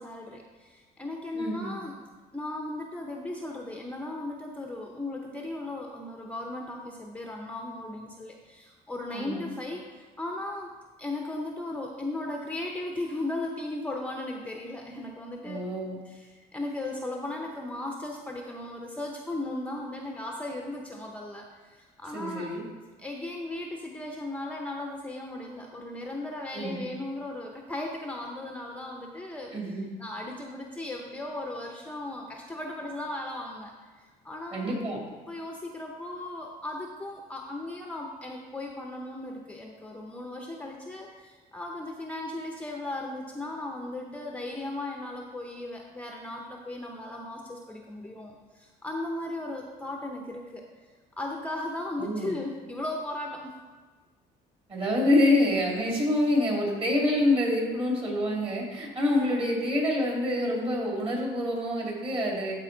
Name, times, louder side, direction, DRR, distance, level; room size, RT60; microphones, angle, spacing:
voice 1, 0.0-2.0 2.3-10.7 11.0-15.6 16.1-22.5 23.0-34.8 35.3-50.9 51.2-53.7, left 2 dB, 10° left, 1 dB, 0.7 m, -37 dB
voice 2, 1.3-1.8 9.1-9.5 15.4-16.0 22.1-22.6 26.5-26.9 29.5-29.9 34.5-35.0 52.0-52.3 54.7-62.5, left 1 dB, 35° right, -2 dB, 2.4 m, -26 dB
12.0 x 4.3 x 3.9 m, 1.4 s
cardioid pair, 110°, 17 cm